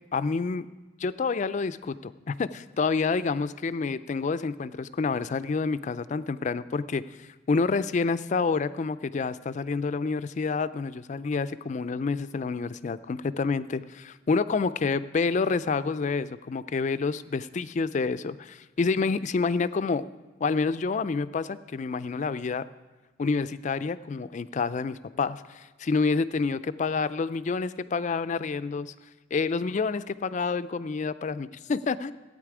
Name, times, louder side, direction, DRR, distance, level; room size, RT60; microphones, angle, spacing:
voice 1, 0.1-0.7 1.0-20.1 20.4-22.7 23.2-28.9 29.3-32.1, left 4 dB, 40° left, 15 dB, 0.3 m, -28 dB
16.0 x 8.9 x 4.9 m, 1.2 s
head